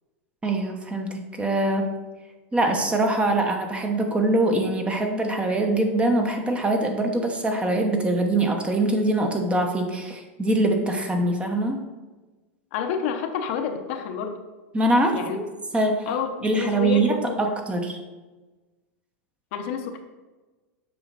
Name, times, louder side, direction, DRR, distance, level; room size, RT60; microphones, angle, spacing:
voice 1, 0.4-1.9 2.5-11.8 14.7-15.2 15.7-16.1 16.4-18.0, right 2 dB, 15° right, 3 dB, 1.0 m, -23 dB
voice 2, 12.7-14.4 15.1-15.4 16.1-17.6 19.5-20.0, left 7 dB, 65° left, 5 dB, 0.9 m, -29 dB
7.8 x 5.0 x 4.1 m, 1.2 s
hypercardioid pair, 110°, 8 cm